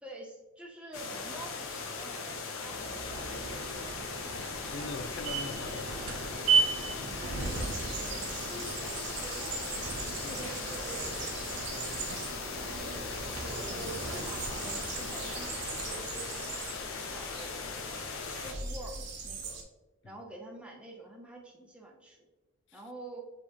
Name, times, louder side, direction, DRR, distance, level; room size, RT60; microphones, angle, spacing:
voice 1, 0.0-3.7 7.2-11.9 13.4-19.6 20.0-22.2 22.7-23.2, right 1 dB, 5° right, 0.6 m, -47 dB
sound 1, 0.9-18.5, left 4 dB, 80° left, 0.7 m, -39 dB
sound 2, 2.7-16.2, right 4 dB, 90° right, 0.6 m, -36 dB
voice 2, 4.4-6.7 12.2-12.7, left 4 dB, 55° left, 0.3 m, -43 dB
sound 3, 7.4-19.6, right 4 dB, 55° right, 0.7 m, -42 dB
4.5 x 3.4 x 2.9 m
head